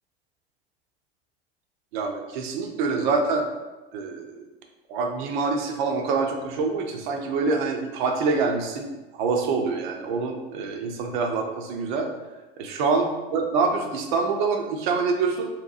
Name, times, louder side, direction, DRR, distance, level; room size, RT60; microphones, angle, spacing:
voice 1, 1.9-3.5 3.9-4.5 4.9-12.1 12.6-15.5, right 4 dB, 50° right, 3 dB, 0.4 m, -26 dB
2.7 x 2.1 x 2.4 m, 1.1 s
figure-of-eight pair, 75°, 31 cm